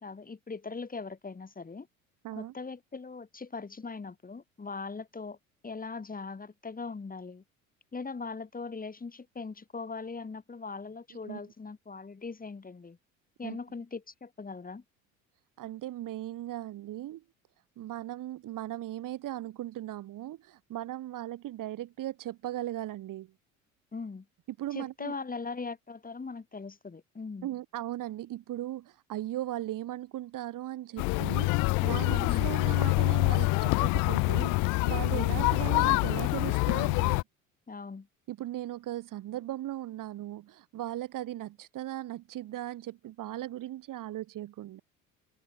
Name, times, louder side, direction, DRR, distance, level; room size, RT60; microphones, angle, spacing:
voice 1, 0.0-1.9 2.3-5.4 5.6-7.4 7.9-13.0 13.4-14.8 23.9-24.3 24.7-27.5 32.3-32.5 35.1-35.5 37.7-38.1, left 4 dB, 20° left, 4.4 m, -40 dB
voice 2, 15.6-17.2 17.8-23.3 24.6-25.1 27.4-37.2 38.3-44.8, right 14 dB, 50° right, 3.7 m, -38 dB
sound 1, 31.0-37.2, left 26 dB, 50° left, 0.5 m, -26 dB
hypercardioid pair, 65°, 40 cm